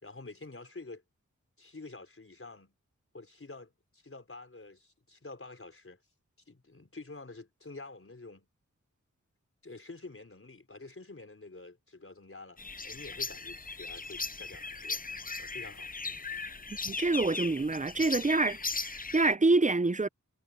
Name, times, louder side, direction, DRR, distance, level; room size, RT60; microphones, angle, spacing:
voice 1, 0.0-1.0 1.6-2.7 3.1-6.0 6.5-8.5 9.6-15.0 15.4-16.3, left 3 dB, 45° left, 4.6 m, -48 dB
sound 1, 12.6-19.3, left 4 dB, 30° left, 0.7 m, -38 dB
voice 2, 16.8-20.1, right 3 dB, 25° right, 0.6 m, -27 dB
wide cardioid pair, 70°, 30 cm